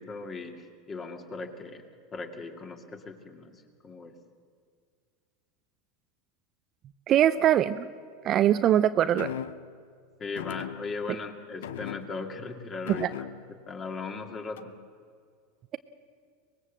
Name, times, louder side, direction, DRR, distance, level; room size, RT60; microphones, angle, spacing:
voice 1, 0.0-1.8 2.1-3.5 3.8-4.1 10.2-13.1 13.7-14.7, left 4 dB, 30° left, 4 dB, 2.5 m, -38 dB
voice 2, 7.1-7.9 8.2-9.3 12.9-13.1, right 11 dB, 40° right, 12 dB, 0.6 m, -22 dB
sound 1, 9.2-9.8 10.4-11.2 11.6-12.4 12.9-13.6 14.6-14.9, left 10 dB, 85° left, 0.6 m, -39 dB
24.0 x 20.0 x 7.5 m, 2.1 s
supercardioid pair, 120°, 0 cm